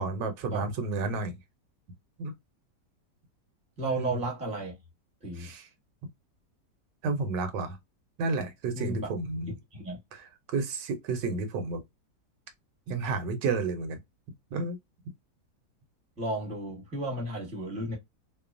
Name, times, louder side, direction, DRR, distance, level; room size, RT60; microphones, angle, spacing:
voice 1, 0.0-1.3 2.2-2.3 3.8-4.2 5.3-5.7 7.0-7.8 8.2-9.5 10.1-11.8 12.9-14.0 14.5-14.8, right 3 dB, 80° right, 1.3 m, -31 dB
voice 2, 3.8-4.7 5.2-5.5 8.7-9.1 9.7-10.0 16.2-18.0, right 1 dB, 5° right, 0.8 m, -33 dB
3.0 x 2.0 x 2.4 m
omnidirectional pair, 1.9 m